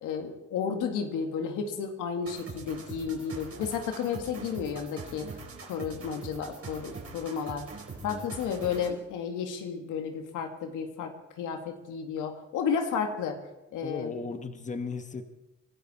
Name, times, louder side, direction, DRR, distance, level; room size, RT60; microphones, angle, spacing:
voice 1, 0.0-5.3 5.6-7.7 8.0-13.4 13.7-14.1, left 6 dB, 90° left, 4 dB, 2.1 m, -32 dB
sound 1, 2.3-9.0, right 4 dB, 50° right, 4.5 m, -43 dB
voice 2, 8.0-8.3 13.8-15.3, left 4 dB, 25° left, 8 dB, 1.3 m, -36 dB
25.0 x 13.0 x 4.4 m, 0.98 s
cardioid pair, 90°, 30 cm